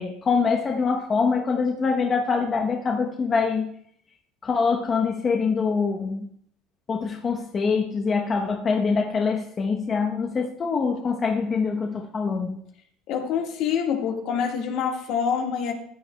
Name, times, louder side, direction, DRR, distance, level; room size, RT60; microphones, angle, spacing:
voice 1, 0.0-3.7 4.4-6.3 6.9-12.6, left 5 dB, 30° left, 2 dB, 0.9 m, -24 dB
voice 2, 13.1-15.7, left 7 dB, 60° left, 3 dB, 1.6 m, -26 dB
15.0 x 9.1 x 2.2 m, 0.67 s
supercardioid pair, 110°, 0 cm